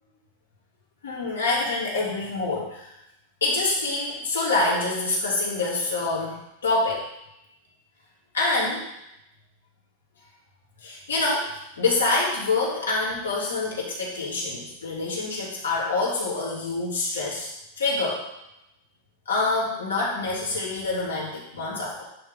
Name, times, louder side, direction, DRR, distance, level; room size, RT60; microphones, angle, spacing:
voice 1, 1.0-2.9 3.4-7.0 8.3-8.8 10.8-11.5 11.8-18.2 19.3-22.0, left 3 dB, 90° left, -4 dB, 2.7 m, -26 dB
10.0 x 3.7 x 5.3 m, 0.86 s
hypercardioid pair, 100°, 0 cm